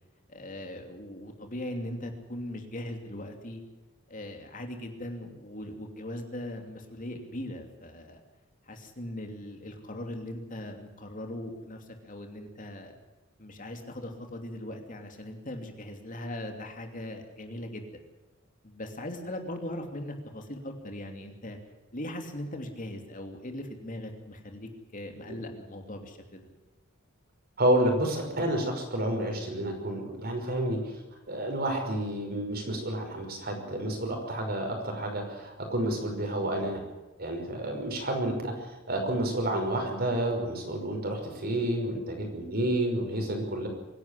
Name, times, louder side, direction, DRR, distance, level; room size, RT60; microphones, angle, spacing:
voice 1, 0.3-3.6 4.1-8.2 8.7-12.9 13.4-18.0 18.6-21.6 21.9-26.5, left 1 dB, 40° left, 4 dB, 2.9 m, -39 dB
voice 2, 27.6-31.0 31.3-36.8 37.2-38.5 38.9-43.7, right 1 dB, 50° right, 3 dB, 5.8 m, -30 dB
24.5 x 11.5 x 10.0 m, 1.1 s
head